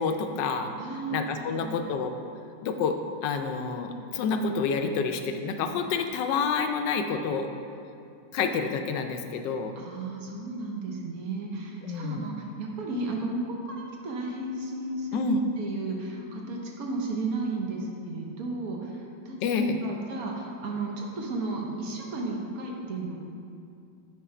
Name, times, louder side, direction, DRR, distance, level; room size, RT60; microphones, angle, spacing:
voice 1, 0.0-0.7 1.1-2.1 2.6-3.0 3.2-7.5 8.3-9.7 11.8-12.3 15.1-15.4 19.4-19.8, left 5 dB, 85° left, 6 dB, 1.2 m, -28 dB
voice 2, 0.8-1.8 9.8-15.2 15.6-23.2, right 2 dB, 60° right, 0 dB, 1.3 m, -34 dB
8.1 x 3.8 x 4.9 m, 2.5 s
omnidirectional pair, 1.9 m